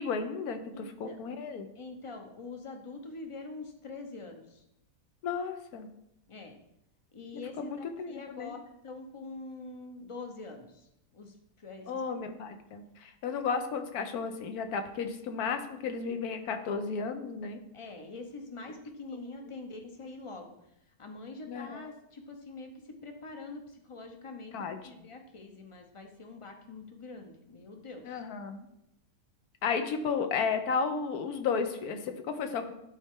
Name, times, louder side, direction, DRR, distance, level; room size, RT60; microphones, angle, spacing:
voice 1, 0.0-1.7 5.2-5.9 7.6-8.5 11.9-17.6 21.5-21.8 24.5-24.8 28.0-28.7 29.6-32.7, left 5 dB, 75° left, 7 dB, 1.3 m, -33 dB
voice 2, 0.7-1.2 1.7-4.6 6.3-6.6 7.1-10.9 11.1-12.0 12.4-12.6 17.7-20.5 21.0-28.2, left 3 dB, 30° left, 4 dB, 0.6 m, -45 dB
11.0 x 4.2 x 3.7 m, 0.82 s
omnidirectional pair, 1.6 m